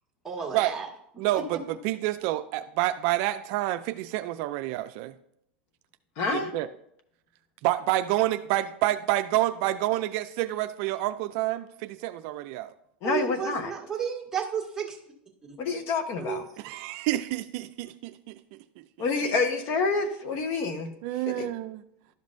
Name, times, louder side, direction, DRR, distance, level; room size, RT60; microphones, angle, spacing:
voice 1, 0.2-0.9 1.2-1.6 13.0-15.0 15.4-15.6 16.2-16.4, right 7 dB, 10° right, -4 dB, 1.7 m, -32 dB
voice 2, 1.2-5.1 6.3-6.7 7.6-12.7 16.6-18.3 21.0-21.8, right 15 dB, 55° right, 11 dB, 0.4 m, -28 dB
voice 3, 6.2-6.5 13.0-13.7 15.6-16.4 19.0-20.9 21.3-21.5, left 4 dB, 50° left, 7 dB, 1.0 m, -28 dB
12.0 x 5.3 x 2.6 m, 0.73 s
supercardioid pair, 130°, 6 cm